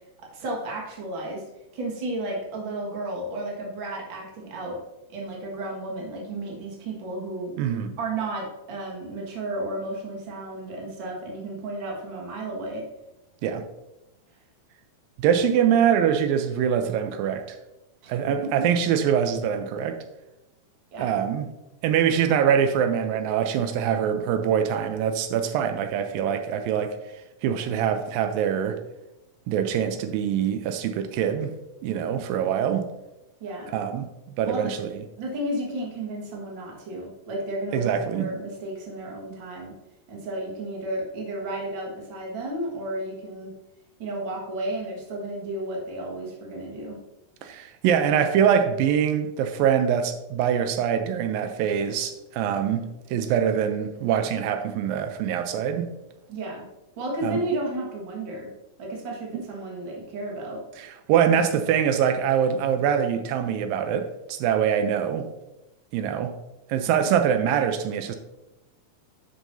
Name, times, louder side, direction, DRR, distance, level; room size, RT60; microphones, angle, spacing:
voice 1, 0.2-1.4 1.7-4.8 5.1-7.5 8.0-12.9 18.0-18.7 20.9-21.1 33.4-33.7 34.4-34.7 35.2-39.7 40.1-43.5 44.0-47.0 56.3-56.6 57.0-58.5 58.8-60.6, right 1 dB, 45° right, -1 dB, 1.9 m, -33 dB
voice 2, 7.6-7.9 13.4-13.6 15.2-17.6 18.1-20.0 21.0-21.5 21.8-27.0 27.4-28.8 29.5-31.5 31.8-32.9 33.7-34.1 34.4-34.9 37.7-38.3 47.4-55.9 57.2-57.4 60.8-65.3 65.9-66.3 66.7-68.2, right 8 dB, 85° right, 8 dB, 2.4 m, -24 dB
10.5 x 7.4 x 2.7 m, 0.95 s
omnidirectional pair, 4.0 m